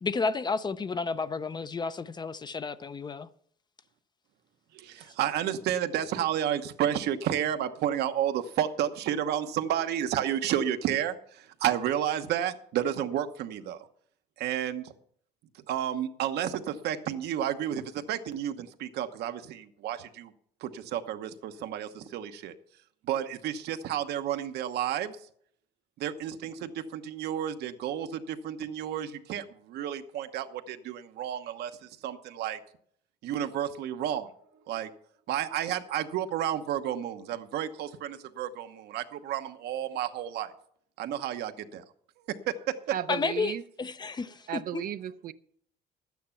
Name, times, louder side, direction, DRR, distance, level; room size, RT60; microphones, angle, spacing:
voice 1, 0.0-3.3 43.1-44.8, left 4 dB, 25° left, 0.6 m, -32 dB
voice 2, 4.7-13.9 14.4-14.9 15.7-20.3 20.6-22.6 23.0-25.2 26.0-32.6 33.2-34.3 34.7-34.9 35.3-40.5 41.0-41.8 42.3-42.8, right 10 dB, 75° right, 1.0 m, -31 dB
voice 3, 42.9-43.6 44.5-45.3, right 11 dB, 60° right, 0.6 m, -34 dB
12.0 x 9.4 x 5.8 m
cardioid pair, 110°, 17 cm